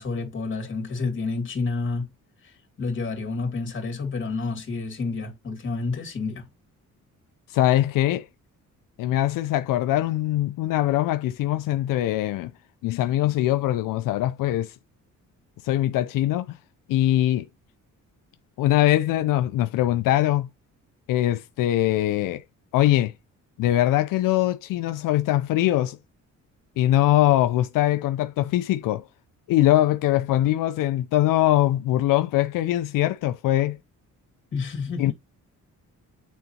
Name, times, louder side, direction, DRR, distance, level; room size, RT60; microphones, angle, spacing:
voice 1, 0.0-2.1 2.4-6.4 34.5-35.1, left 3 dB, 40° left, 2.9 m, -29 dB
voice 2, 7.5-8.3 9.0-12.5 12.8-14.7 15.6-16.6 16.9-17.5 18.6-20.5 21.1-22.4 22.7-23.1 23.6-26.0 26.8-29.0 29.5-33.8 35.0-35.1, left 14 dB, 90° left, 0.5 m, -22 dB
9.1 x 4.0 x 2.9 m
cardioid pair, 110°, 32 cm